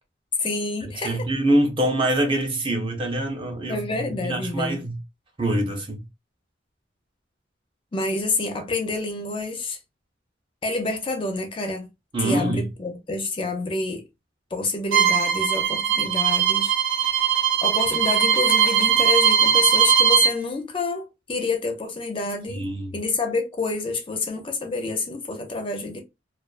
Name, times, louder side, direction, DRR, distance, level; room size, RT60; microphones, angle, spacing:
voice 1, 0.4-1.2 3.7-4.8 7.9-9.8 10.6-11.9 12.2-14.0 14.5-17.3 17.6-22.6 22.9-26.0, left 3 dB, 30° left, 0.4 m, -28 dB
voice 2, 1.0-5.0 5.4-6.0 12.1-12.7 22.5-23.0, right 1 dB, 30° right, 0.5 m, -24 dB
Bowed string instrument, 14.9-20.3, right 8 dB, 90° right, 0.7 m, -20 dB
2.3 x 2.3 x 2.3 m
head